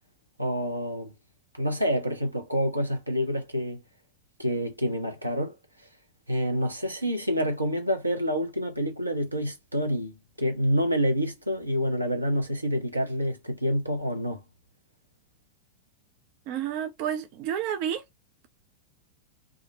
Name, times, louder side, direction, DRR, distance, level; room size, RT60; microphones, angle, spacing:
voice 1, 0.4-1.1 1.5-3.8 4.4-5.5 6.3-10.1 10.4-14.4, equal, 85° right, 0.7 m, -27 dB
voice 2, 16.5-18.0, right 9 dB, 45° right, 0.3 m, -30 dB
2.4 x 2.1 x 2.8 m
figure-of-eight pair, 90°, 0 cm